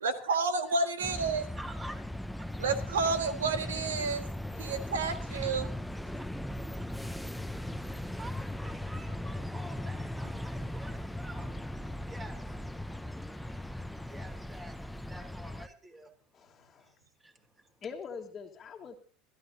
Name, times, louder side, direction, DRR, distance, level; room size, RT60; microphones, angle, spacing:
voice 1, 0.0-1.5 2.6-4.2 4.6-5.7, right 4 dB, 85° right, 9 dB, 1.7 m, -30 dB
sound 1, 1.0-15.7, left 1 dB, 5° left, 0.7 m, -38 dB
voice 2, 1.6-2.0 2.3-2.5 7.8-11.5 12.1-12.4 14.1-14.7 15.1-16.1 17.2-17.3, right 1 dB, 20° right, 3 dB, 3.6 m, -47 dB
voice 3, 16.3-16.9 17.8-19.0, left 5 dB, 35° left, 0 dB, 1.7 m, -43 dB
25.0 x 13.5 x 2.8 m, 0.41 s
hypercardioid pair, 85°, 0 cm